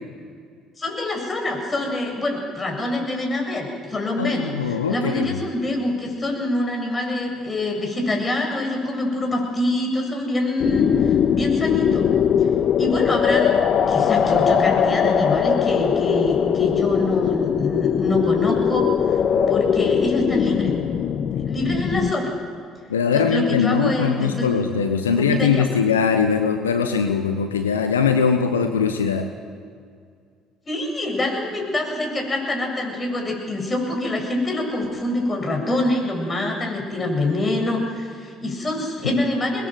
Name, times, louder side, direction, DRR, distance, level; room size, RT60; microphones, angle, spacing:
voice 1, 0.8-12.1 12.8-19.2 19.5-20.7 21.3-22.3 23.1-24.5 25.1-25.8 30.7-39.7, left 1 dB, 25° left, 1 dB, 7.5 m, -25 dB
voice 2, 4.2-5.4 22.9-29.3, left 6 dB, 90° left, 7 dB, 1.0 m, -21 dB
sound 1, 10.6-22.1, left 8 dB, 50° left, 1.1 m, -20 dB
24.5 x 21.0 x 7.8 m, 2.2 s
hypercardioid pair, 55°, 0 cm